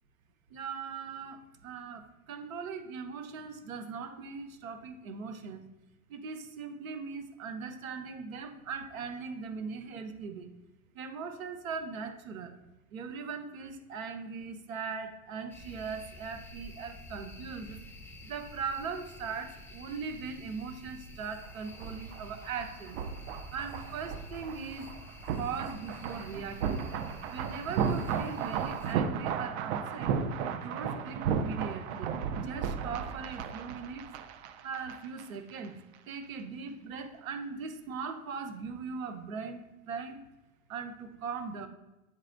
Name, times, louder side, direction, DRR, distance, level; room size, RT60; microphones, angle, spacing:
voice 1, 0.5-5.6 6.1-10.5 10.9-12.5 12.9-17.8 18.2-23.0 23.5-24.9 25.4-26.9 27.3-30.1 30.5-34.0 34.6-35.8 36.1-40.2 40.7-41.7, right 5 dB, 75° right, 6 dB, 1.1 m, -40 dB
sound 1, 15.5-28.9, left 1 dB, 5° left, 0.6 m, -49 dB
sound 2, 21.4-35.2 35.5-35.7, right 7 dB, 55° right, 0.7 m, -34 dB
8.9 x 4.3 x 2.6 m, 1.0 s
hypercardioid pair, 115°, 41 cm